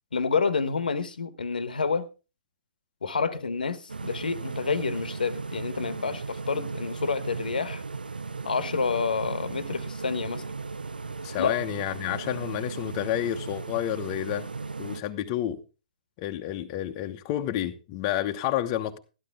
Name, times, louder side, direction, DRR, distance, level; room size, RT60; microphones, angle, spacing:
voice 1, 0.1-2.1 3.0-7.8 8.4-10.4 11.4-11.6, left 5 dB, 75° left, 1.2 m, -28 dB
sound 1, 3.9-15.0, right 4 dB, 80° right, 0.6 m, -36 dB
voice 2, 11.2-14.5 14.8-15.6 16.2-19.0, left 12 dB, 35° left, 1.0 m, -30 dB
12.5 x 11.5 x 3.5 m
figure-of-eight pair, 125°, 5 cm